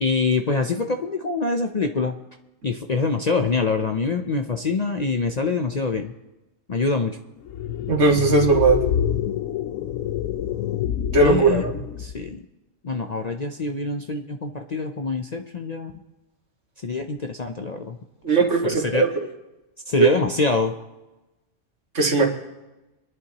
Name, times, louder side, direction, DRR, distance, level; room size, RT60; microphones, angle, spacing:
voice 1, 0.0-2.2 2.6-6.1 6.7-7.2 11.2-11.6 12.0-12.4 12.8-15.9 16.8-18.0 18.3-18.4 18.6-19.1 19.9-20.7, left 4 dB, 45° left, 5 dB, 0.6 m, -25 dB
sound 1, 7.5-12.3, left 9 dB, 85° left, 1.0 m, -27 dB
voice 2, 7.9-8.8 11.1-11.7 18.2-19.1 20.0-20.1 21.9-22.3, right 4 dB, 70° right, 0 dB, 2.3 m, -18 dB
26.5 x 11.0 x 2.9 m, 1.0 s
omnidirectional pair, 1.3 m